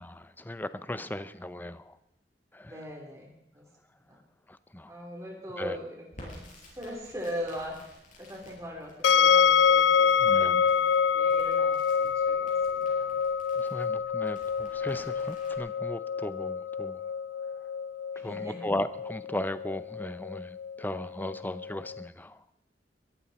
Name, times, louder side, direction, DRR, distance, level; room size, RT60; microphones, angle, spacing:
voice 1, 0.0-1.9 2.5-2.8 4.5-4.9 5.6-5.8 10.2-10.7 13.6-17.0 18.2-22.4, left 1 dB, 10° left, 0.6 m, -37 dB
voice 2, 2.7-3.6 4.9-6.4 6.8-7.8 8.2-13.3 18.1-18.6, equal, 20° right, 3.4 m, -40 dB
Crackle, 6.1-15.6, left 1 dB, 45° left, 6.4 m, -53 dB
sound 1, 9.0-22.0, left 7 dB, 80° left, 0.5 m, -26 dB
22.0 x 14.0 x 4.2 m
head